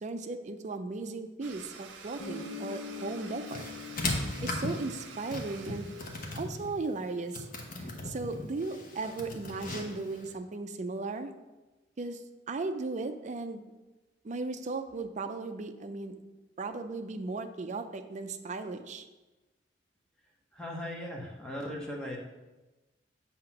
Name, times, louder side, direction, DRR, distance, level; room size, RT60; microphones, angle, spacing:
voice 1, 0.0-3.7 4.4-5.9 6.3-11.3 12.0-12.2 12.5-13.6 14.2-16.2 16.6-19.1, right 3 dB, 40° right, 8 dB, 0.4 m, -36 dB
Domestic sounds home sounds, 1.4-6.4, right 5 dB, 75° right, 0.7 m, -48 dB
Guitar, 2.2-6.8, left 5 dB, 80° left, 0.7 m, -45 dB
sound 1, 3.5-10.3, left 2 dB, 45° left, 0.9 m, -38 dB
voice 2, 20.5-22.2, left 1 dB, 5° left, -2 dB, 0.9 m, -38 dB
7.7 x 2.8 x 5.8 m, 1.1 s
head